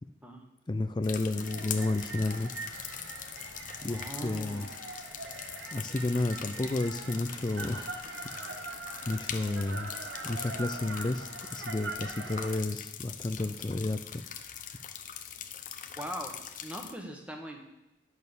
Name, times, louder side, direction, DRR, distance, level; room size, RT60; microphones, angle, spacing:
voice 1, 0.7-2.7 3.8-4.7 5.7-7.9 9.0-9.9 10.2-14.2, left 2 dB, 25° left, 9 dB, 0.4 m, -31 dB
sound 1, 1.0-16.9, left 9 dB, 45° left, 0.8 m, -42 dB
sound 2, 1.4-12.6, right 3 dB, 80° right, 1.4 m, -42 dB
voice 2, 3.9-4.7 15.9-16.3 16.6-17.6, equal, 5° right, 3 dB, 1.4 m, -40 dB
10.5 x 6.4 x 6.9 m, 0.93 s
head